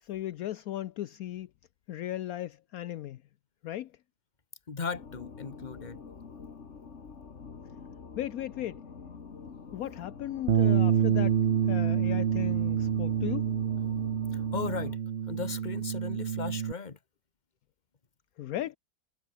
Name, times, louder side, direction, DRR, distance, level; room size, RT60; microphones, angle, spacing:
voice 1, 0.0-1.5 1.9-3.2 3.6-3.9 8.1-8.8 9.7-13.5 18.4-18.8, left 13 dB, 70° left, 1.1 m, -36 dB
voice 2, 4.7-6.0 14.3-15.0 15.3-17.0, left 5 dB, 30° left, 1.5 m, -37 dB
sound 1, 4.9-15.0, left 5 dB, 50° left, 2.0 m, -46 dB
Bass guitar, 10.5-16.7, right 8 dB, 50° right, 0.8 m, -27 dB
omnidirectional pair, 1.6 m